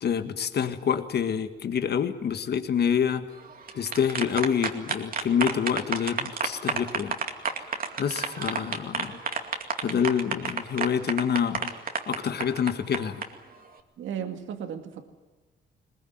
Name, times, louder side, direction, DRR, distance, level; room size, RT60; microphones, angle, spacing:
voice 1, 0.0-3.2 3.7-7.1 8.0-9.2 9.8-11.7 12.1-13.2, left 7 dB, 55° left, 9 dB, 1.7 m, -27 dB
sound 1, 3.5-13.3, right 5 dB, 45° right, 2.4 m, -30 dB
voice 2, 14.0-15.1, right 8 dB, 75° right, 6 dB, 2.1 m, -35 dB
21.0 x 20.5 x 9.5 m, 1.2 s
cardioid pair, 90°, 20 cm